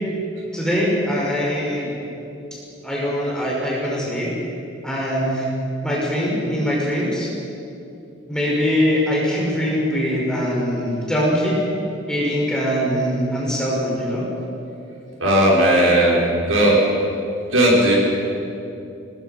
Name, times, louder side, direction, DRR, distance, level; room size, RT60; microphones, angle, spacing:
voice 1, 0.5-1.9 2.8-4.3 4.8-5.5 5.8-7.3 8.3-11.6 12.1-14.2, equal, 5° left, -5 dB, 5.4 m, -22 dB
voice 2, 15.2-16.8 17.5-18.0, right 1 dB, 85° right, -4 dB, 6.0 m, -16 dB
25.5 x 20.0 x 5.8 m, 2.7 s
head